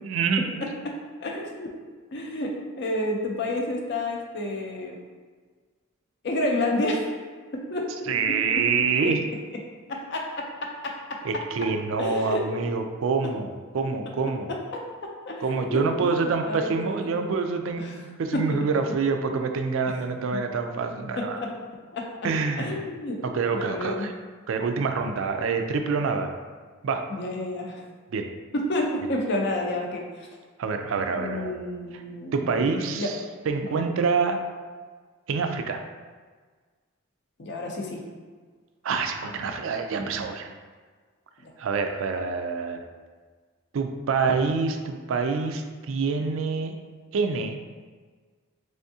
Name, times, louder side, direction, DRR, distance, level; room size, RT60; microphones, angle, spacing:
voice 1, 0.0-0.5 8.1-9.2 11.2-14.5 15.4-21.4 22.2-22.8 23.2-24.1 24.5-26.4 26.8-27.1 28.1-28.3 30.6-31.6 31.9-32.0 32.3-34.4 35.3-35.8 38.8-40.5 41.6-42.8 43.7-46.7 47.1-47.6, right 4 dB, 65° right, 6 dB, 0.3 m, -26 dB
voice 2, 0.6-0.9 1.2-1.7 2.1-2.5 2.8-5.0 6.2-7.1 7.5-8.1 8.5-8.6 9.0-9.1 9.9-11.2 12.0-12.4 14.5-14.8 15.3-17.3 17.8-17.9 18.3-18.5 20.3-20.4 21.2-21.5 21.9-22.1 22.6-23.2 23.5-24.1 27.1-27.8 28.5-30.3 31.1-32.7 33.0-33.1 33.6-33.8 37.4-38.0 41.4-41.5, left 1 dB, 50° left, 0 dB, 0.5 m, -30 dB
3.5 x 3.4 x 2.7 m, 1.5 s
head